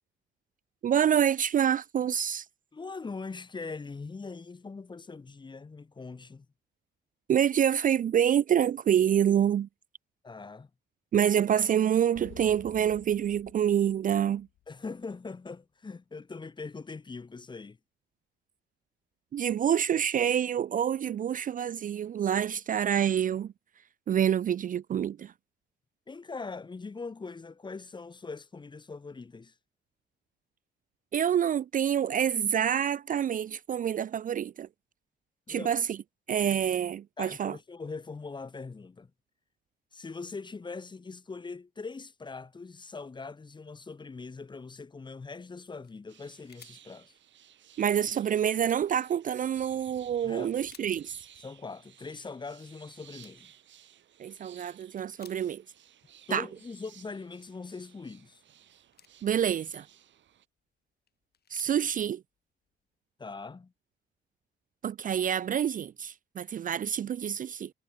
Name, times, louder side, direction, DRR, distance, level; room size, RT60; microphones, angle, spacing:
voice 1, 0.8-2.5 7.3-9.7 11.1-14.5 19.3-23.5 24.1-25.3 31.1-34.7 35.5-36.0 36.3-37.6 47.8-51.1 54.2-55.6 56.3-56.5 59.2-59.9 61.5-62.2 64.8-67.7, right 9 dB, 45° right, 0.4 m, -27 dB
voice 2, 2.7-6.5 10.2-10.7 14.7-17.8 26.1-29.5 35.5-35.7 37.2-39.1 39.9-47.1 50.2-50.5 51.4-53.5 56.3-58.4 63.2-63.7, left 4 dB, 25° left, 0.9 m, -41 dB
sound 1, 12.1-15.1, left 13 dB, 80° left, 2.4 m, -52 dB
sound 2, 45.8-47.3 47.5-47.6 47.9-48.0 48.5-49.0 49.6-50.0 50.4-51.3 51.8-52.2 52.9-53.0 53.2-53.6 54.0-55.8 56.1-56.2 56.5-57.6 58.2-59.3 59.9-60.7 61.1-63.0, left 8 dB, 55° left, 2.0 m, -59 dB
sound 3, 46.1-60.5, right 10 dB, 70° right, 5.6 m, -58 dB
cardioid pair, 90°, 20 cm